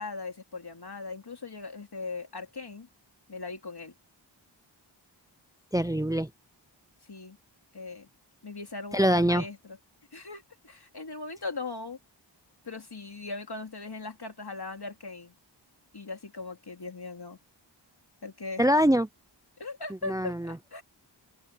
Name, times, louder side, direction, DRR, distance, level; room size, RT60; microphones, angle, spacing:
voice 1, 0.0-2.9 3.3-3.9 7.0-7.4 7.7-8.1 8.4-9.8 10.1-12.0 12.6-15.3 15.9-17.4 18.2-18.6 19.6-20.8, left 3 dB, 55° left, 3.0 m, -39 dB
voice 2, 5.7-6.3 8.9-9.4 18.6-19.1 20.1-20.6, equal, 10° right, 0.7 m, -24 dB
open air
wide cardioid pair, 55°, 45 cm